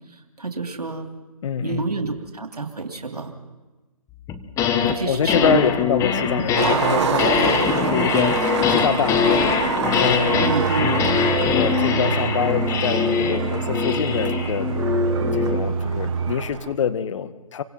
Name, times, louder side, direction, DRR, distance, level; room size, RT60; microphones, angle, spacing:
voice 1, 0.4-1.0 1.6-3.3 4.9-5.6 10.3-10.9, right 4 dB, 85° right, 6 dB, 3.0 m, -27 dB
voice 2, 1.4-1.9 5.1-10.4 10.8-14.7 15.3-17.6, left 7 dB, 55° left, 12 dB, 1.7 m, -25 dB
sound 1, 4.3-5.0 5.3-15.7, left 7 dB, 15° left, 1.5 m, -23 dB
Skateboard, 6.6-16.7, right 7 dB, 45° right, 2.2 m, -27 dB
sound 2, 10.3-16.4, right 6 dB, 70° right, 1.1 m, -27 dB
28.5 x 25.0 x 5.6 m, 1.2 s
figure-of-eight pair, 140°, 19 cm